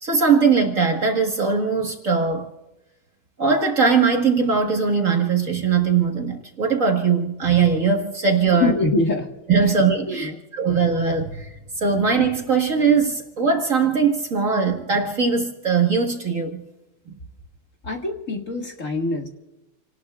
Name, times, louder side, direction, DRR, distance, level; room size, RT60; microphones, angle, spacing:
voice 1, 0.0-2.5 3.4-8.7 9.5-16.6, right 5 dB, 40° right, 2 dB, 2.0 m, -20 dB
voice 2, 8.5-9.3 9.6-9.7 10.1-10.4 17.8-19.3, left 2 dB, 40° left, 1 dB, 2.1 m, -24 dB
29.5 x 19.0 x 2.4 m, 1.0 s
omnidirectional pair, 2.2 m